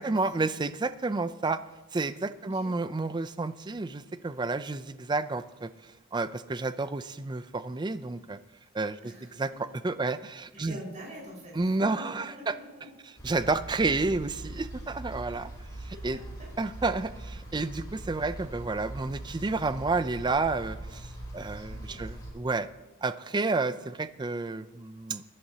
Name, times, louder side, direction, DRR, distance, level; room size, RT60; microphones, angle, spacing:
voice 1, 0.0-1.6 1.9-5.7 6.1-8.4 8.7-9.1 9.4-9.5 9.8-10.8 11.5-12.5 13.2-15.5 15.8-16.2 16.6-22.7 23.0-25.2, right 3 dB, 20° right, 13 dB, 0.4 m, -30 dB
voice 2, 2.4-2.7 9.0-9.4 10.0-10.1 10.5-12.9 15.3-15.5 15.9-16.0 16.4-16.5 21.7-22.0, right 1 dB, 35° right, -4 dB, 4.9 m, -45 dB
sound 1, 13.2-22.3, right 1 dB, 20° left, 3.8 m, -42 dB
21.5 x 11.0 x 2.8 m, 1.0 s
head